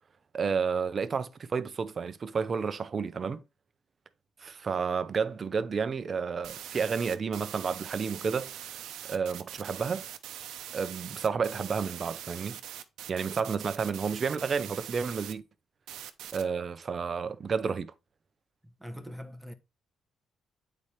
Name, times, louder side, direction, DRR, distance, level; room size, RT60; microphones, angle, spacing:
voice 1, 0.3-3.4 4.4-8.5 9.1-10.0 10.7-12.6 13.1-15.4 16.3-17.9, right 5 dB, 40° right, 0.6 m, -31 dB
sound 1, 6.4-15.3 15.9-16.4, right 11 dB, 85° right, 0.7 m, -42 dB
voice 2, 18.6-19.5, equal, ahead, 1.0 m, -43 dB
8.3 x 4.3 x 3.2 m
cardioid pair, 90°, 0 cm